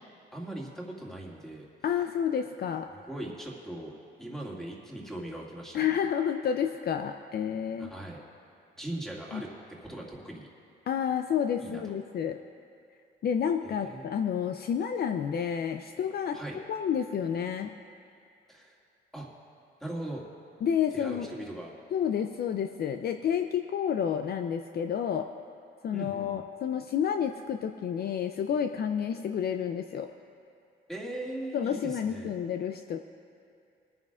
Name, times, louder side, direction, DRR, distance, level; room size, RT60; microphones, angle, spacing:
voice 1, 0.3-1.7 2.9-5.9 7.8-8.2 8.7-9.5 9.8-10.5 11.6-11.8 13.6-14.1 16.3-16.6 18.5-18.8 19.1-19.3 19.8-20.2 20.9-21.7 25.9-26.4 30.9-32.3, right 1 dB, ahead, -3 dB, 2.1 m, -39 dB
voice 2, 1.8-2.9 5.7-7.9 9.3-9.4 10.9-12.4 13.2-16.4 16.7-17.7 20.6-21.3 21.9-25.3 25.8-30.1 31.5-33.0, left 8 dB, 50° left, 6 dB, 0.5 m, -30 dB
23.0 x 9.3 x 2.4 m, 2.5 s
cardioid pair, 90°, 20 cm